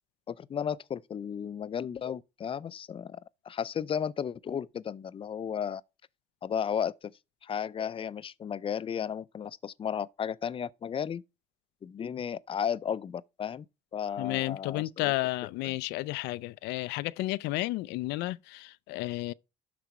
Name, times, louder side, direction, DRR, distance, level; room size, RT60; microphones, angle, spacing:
voice 1, 0.3-3.2 3.4-5.8 6.4-11.2 11.8-13.7 13.9-15.1 15.6-15.7, left 8 dB, 30° left, 0.5 m, -34 dB
voice 2, 14.2-19.3, left 19 dB, 90° left, 0.4 m, -32 dB
12.0 x 4.1 x 4.8 m
cardioid pair, 110°, 17 cm